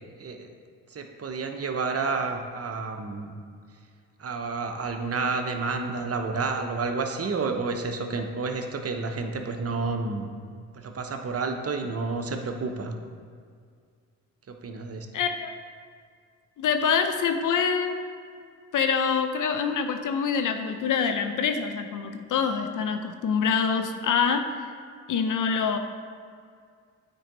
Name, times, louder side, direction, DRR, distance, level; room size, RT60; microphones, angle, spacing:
voice 1, 0.2-0.5 0.9-3.3 4.2-10.3 10.7-13.0 14.5-15.1, right 4 dB, 40° right, 5 dB, 0.9 m, -30 dB
voice 2, 15.1-15.5 16.6-18.1 18.7-24.4 25.1-25.8, left 6 dB, 55° left, 7 dB, 0.7 m, -25 dB
8.9 x 4.7 x 3.9 m, 2.1 s
hypercardioid pair, 45°, 39 cm